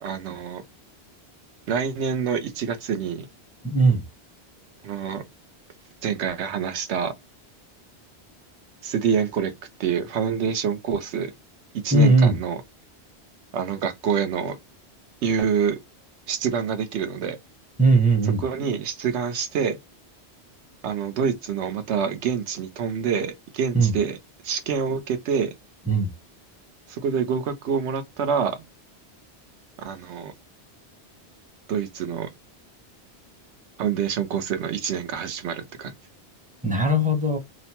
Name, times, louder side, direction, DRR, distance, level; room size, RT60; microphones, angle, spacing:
voice 1, 0.0-0.6 1.7-3.3 4.8-5.2 6.0-7.1 8.8-9.5 9.8-11.3 11.7-12.6 13.5-14.6 15.2-15.8 16.3-17.4 18.4-19.8 20.8-24.2 24.4-25.5 26.9-28.6 29.8-30.3 31.7-32.3 33.8-35.9, right 7 dB, 90° right, 1.0 m, -26 dB
voice 2, 3.6-4.0 11.9-12.4 17.8-18.4 23.7-23.9 25.9-26.1 36.6-37.4, right 2 dB, 10° right, 0.6 m, -18 dB
2.9 x 2.1 x 2.7 m
omnidirectional pair, 1.1 m